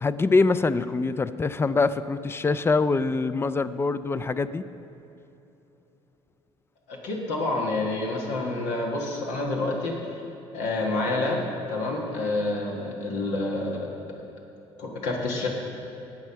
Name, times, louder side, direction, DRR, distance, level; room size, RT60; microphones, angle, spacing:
voice 1, 0.0-4.6, left 3 dB, 20° left, 14 dB, 0.4 m, -24 dB
voice 2, 6.9-10.0 10.5-11.4 11.7-14.0 14.8-15.5, left 2 dB, 85° left, -1 dB, 1.5 m, -28 dB
10.5 x 8.1 x 5.7 m, 3.0 s
cardioid pair, 95°, 12 cm